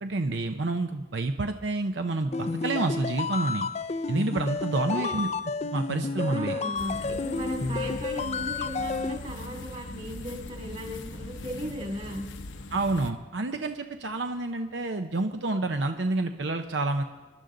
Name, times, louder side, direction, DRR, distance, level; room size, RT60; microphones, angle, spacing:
voice 1, 0.0-3.7 4.1-5.3 5.6-6.6 12.7-17.0, right 2 dB, 75° right, 6 dB, 0.7 m, -28 dB
sound 1, 2.3-9.2, left 4 dB, 35° left, 0.4 m, -31 dB
voice 2, 4.8-5.1 6.2-12.3, equal, 35° right, 2 dB, 2.5 m, -37 dB
sound 2, 6.8-13.1, left 2 dB, 85° left, 0.9 m, -40 dB
26.5 x 11.5 x 3.9 m, 1.2 s
head